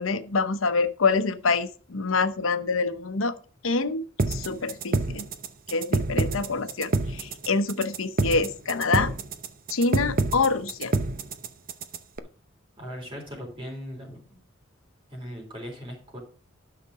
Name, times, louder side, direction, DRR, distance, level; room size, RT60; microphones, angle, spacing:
voice 1, 0.0-3.3 3.6-5.3 5.7-9.1 9.7-10.9, left 4 dB, 90° left, 10 dB, 0.9 m, -26 dB
sound 1, 4.2-12.2, right 3 dB, 45° right, 0.7 m, -27 dB
voice 2, 12.8-14.2 15.1-16.2, equal, 25° right, 0 dB, 3.8 m, -38 dB
11.5 x 5.9 x 4.8 m, 0.40 s
head